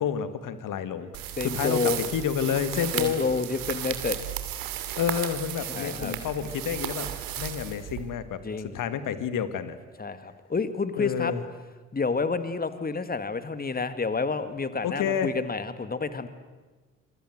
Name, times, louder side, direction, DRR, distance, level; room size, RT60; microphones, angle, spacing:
voice 1, 0.0-3.3 5.0-7.1 7.4-8.4 8.7-9.8 11.0-11.4 14.8-15.3, left 8 dB, 55° left, 12 dB, 2.3 m, -29 dB
sound 1, 1.1-8.3, right 12 dB, 65° right, 2.7 m, -34 dB
voice 2, 1.4-2.0 2.9-4.2 5.7-6.1 8.4-8.8 10.0-11.3 11.9-16.3, left 4 dB, 25° left, 11 dB, 2.2 m, -29 dB
27.0 x 23.0 x 8.0 m, 1.3 s
hypercardioid pair, 50°, 37 cm